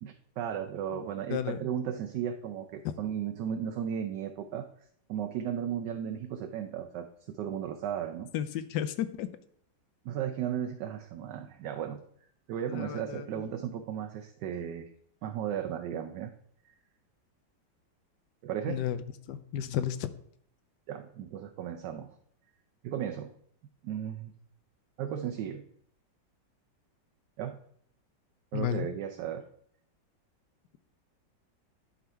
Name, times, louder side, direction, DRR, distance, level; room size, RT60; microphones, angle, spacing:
voice 1, 0.0-4.7 5.1-8.3 10.0-12.0 12.5-14.9 15.2-16.3 18.4-18.9 20.9-22.2 22.8-23.3 23.8-24.3 25.0-25.6 27.4-27.6 28.5-29.4, right 9 dB, 75° right, 4 dB, 1.2 m, -35 dB
voice 2, 0.9-1.6 2.8-2.9 8.3-9.3 12.7-13.3 18.7-19.0 19.3-20.1 28.5-28.9, left 10 dB, 75° left, 12 dB, 1.2 m, -33 dB
11.0 x 3.9 x 4.5 m, 0.64 s
omnidirectional pair, 2.0 m